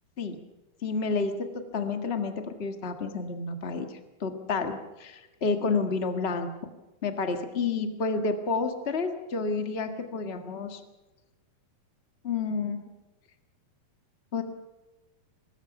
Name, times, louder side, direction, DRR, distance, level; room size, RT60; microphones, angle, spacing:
voice 1, 0.8-6.5 7.0-10.8 12.2-12.8 14.3-14.4, left 4 dB, 65° left, 5 dB, 0.6 m, -30 dB
24.5 x 20.5 x 6.0 m, 1.1 s
omnidirectional pair, 4.2 m